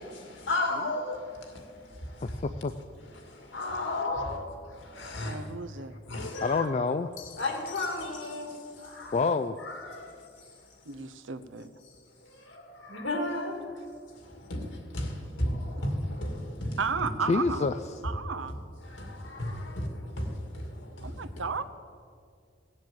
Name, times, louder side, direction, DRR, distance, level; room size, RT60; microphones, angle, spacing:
voice 1, 0.5-1.2 3.5-4.4 5.1-5.3 6.1-6.6 7.4-8.5 12.9-13.5 14.5-14.6 15.4-15.5 15.8-15.9 16.6-16.7, left 2 dB, 75° left, 2 dB, 2.2 m, -31 dB
voice 2, 2.2-2.7 6.4-7.1 9.1-9.6 17.3-17.7, left 4 dB, 35° left, 9 dB, 0.4 m, -27 dB
voice 3, 5.2-5.9 10.9-11.7 16.8-17.7 18.0-18.5 21.0-21.6, right 5 dB, 75° right, 10 dB, 0.8 m, -34 dB
17.0 x 7.4 x 7.8 m, 2.2 s
head